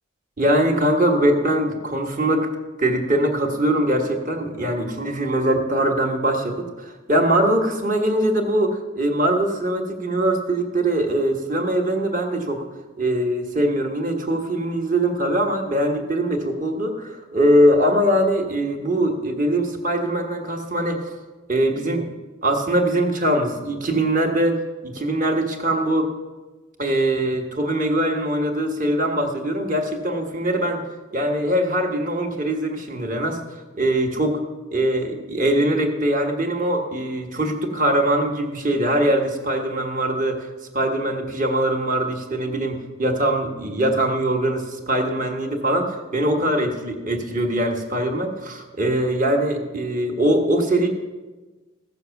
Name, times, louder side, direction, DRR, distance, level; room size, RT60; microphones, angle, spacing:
voice 1, 0.4-2.5 2.8-12.6 13.0-21.1 21.5-22.1 22.4-26.1 26.8-30.8 31.1-33.4 33.7-34.4 34.7-40.5 40.7-50.9, right 1 dB, 40° right, 2 dB, 1.5 m, -22 dB
15.0 x 6.6 x 7.1 m, 1.2 s
head